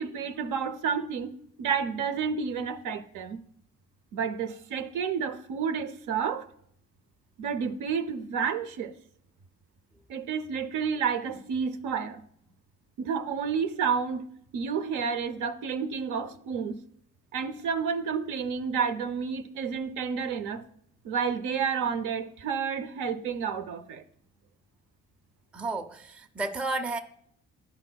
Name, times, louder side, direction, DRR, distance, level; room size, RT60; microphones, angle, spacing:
voice 1, 0.0-1.3 1.6-3.4 4.1-6.5 7.4-8.9 10.1-12.2 13.0-14.3 14.5-16.8 17.3-20.6 21.0-24.0, right 6 dB, 85° right, 0.6 m, -30 dB
voice 2, 25.5-27.0, right 3 dB, 5° right, 0.4 m, -32 dB
11.0 x 4.9 x 2.2 m
cardioid pair, 90°, 30 cm